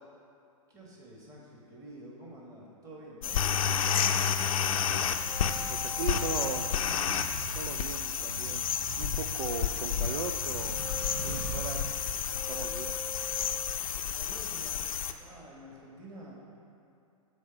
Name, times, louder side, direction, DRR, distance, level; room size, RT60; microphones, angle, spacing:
voice 1, 0.7-3.5 13.9-16.3, right 1 dB, 20° right, -4 dB, 1.6 m, -49 dB
sound 1, 3.2-15.1, left 8 dB, 70° left, 0.5 m, -31 dB
sound 2, 3.7-13.5, right 2 dB, 65° right, 1.5 m, -42 dB
sound 3, 5.1-7.3 10.6-13.8, equal, ahead, 0.3 m, -45 dB
voice 2, 5.7-6.7 7.5-8.7 9.0-10.8 11.2-11.9 12.5-13.0, right 5 dB, 90° right, 4 dB, 0.4 m, -38 dB
7.2 x 4.2 x 5.8 m, 2.6 s
hypercardioid pair, 120°, 18 cm